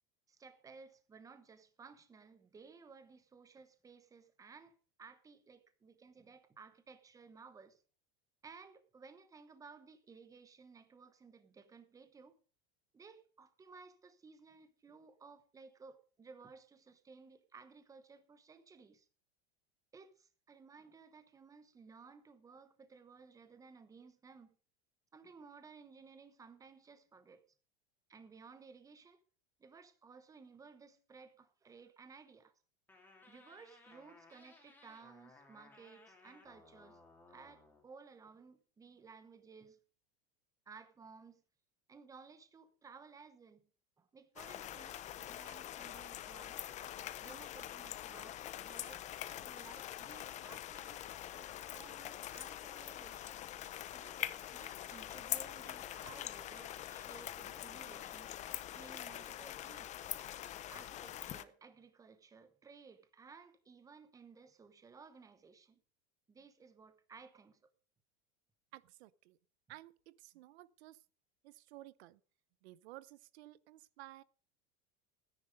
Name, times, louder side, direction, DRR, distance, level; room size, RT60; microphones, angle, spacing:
voice 1, 0.3-7.8 8.4-12.4 12.9-19.1 19.9-24.6 25.1-27.4 28.1-29.2 29.6-32.5 33.3-37.0 37.3-39.8 40.7-41.4 41.9-43.7 44.0-46.6 47.2-49.0 49.4-53.4 53.9-58.4 58.7-59.9 60.7-65.8 66.3-67.6, right 5 dB, 10° right, 0.9 m, -57 dB
sound 1, 32.9-37.8, left 2 dB, 5° left, 2.8 m, -61 dB
sound 2, 44.4-61.4, left 12 dB, 25° left, 0.5 m, -44 dB
voice 2, 68.7-69.4 69.7-71.0 71.4-72.2 72.6-74.2, right 16 dB, 90° right, 0.8 m, -55 dB
13.5 x 10.0 x 5.1 m
supercardioid pair, 160°, 31 cm